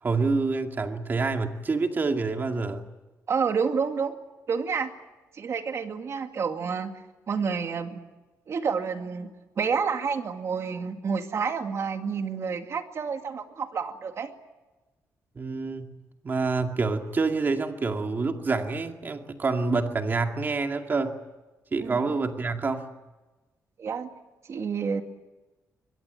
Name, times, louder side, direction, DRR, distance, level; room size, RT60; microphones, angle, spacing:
voice 1, 0.0-2.8 15.4-15.9 16.2-21.2 21.7-22.9, right 3 dB, 30° right, 5 dB, 2.2 m, -27 dB
voice 2, 3.3-4.1 4.5-4.9 5.3-6.9 7.3-8.0 8.5-9.3 9.6-14.3 21.8-22.0 23.8-24.1 24.5-25.0, right 6 dB, 50° right, 6 dB, 2.2 m, -29 dB
23.0 x 21.5 x 9.1 m, 1.2 s
cardioid pair, 130°, 6 cm